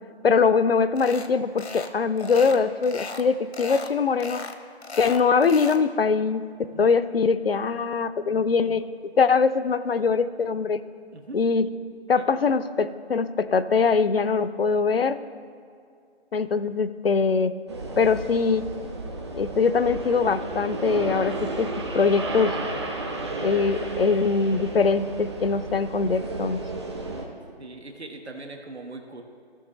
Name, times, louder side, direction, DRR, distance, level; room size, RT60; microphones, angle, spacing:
voice 1, 0.2-4.4 5.0-8.9 9.2-10.8 11.3-11.7 12.1-15.2 16.3-17.5 18.0-18.7 19.4-22.6 23.4-26.6, left 5 dB, 60° left, 13 dB, 0.6 m, -22 dB
sound 1, 1.0-1.3 1.6-1.9 2.2-3.3 3.5-3.9 4.2-5.8, left 4 dB, 85° left, 1.0 m, -36 dB
sound 2, 17.7-27.2, right 2 dB, 25° right, 0.9 m, -32 dB
voice 2, 27.6-29.2, right 2 dB, 75° right, 3 dB, 1.3 m, -40 dB
16.5 x 6.2 x 3.1 m, 2.3 s
figure-of-eight pair, 160°, 33 cm